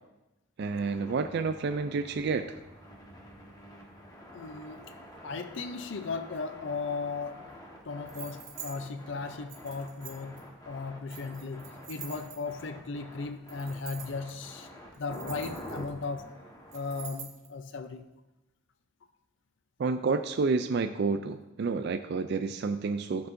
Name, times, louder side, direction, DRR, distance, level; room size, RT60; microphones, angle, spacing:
sound 1, 0.6-17.1, equal, 20° left, 1.2 m, -48 dB
voice 1, 0.6-2.5 19.8-23.3, right 4 dB, 55° right, 0.3 m, -29 dB
voice 2, 4.3-4.9 5.2-7.4 7.9-14.7 15.0-16.4 16.7-18.0, left 4 dB, 65° left, 0.5 m, -37 dB
sound 2, 8.1-8.7 9.5-10.4 11.1-12.6 13.5-14.3 14.9-16.0 16.7-17.5, right 8 dB, 85° right, 1.6 m, -45 dB
13.5 x 7.0 x 2.6 m
head